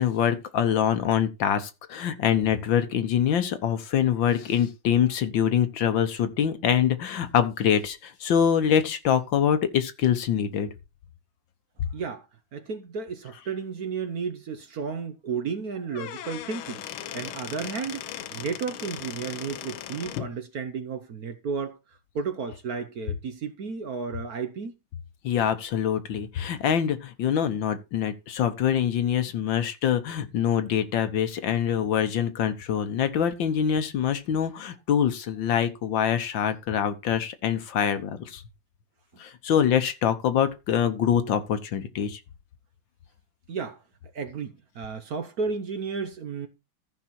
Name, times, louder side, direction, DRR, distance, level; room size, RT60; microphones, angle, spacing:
voice 1, 0.0-10.7 25.2-38.4 39.2-42.2, left 8 dB, 70° left, 1.7 m, -24 dB
voice 2, 11.9-12.3 12.5-16.8 17.1-21.8 22.1-24.7 43.5-43.8 44.1-46.5, right 5 dB, 55° right, 1.2 m, -33 dB
Squeak / Wood, 15.8-20.3, left 11 dB, 85° left, 1.6 m, -38 dB
14.0 x 5.4 x 4.4 m
omnidirectional pair, 2.2 m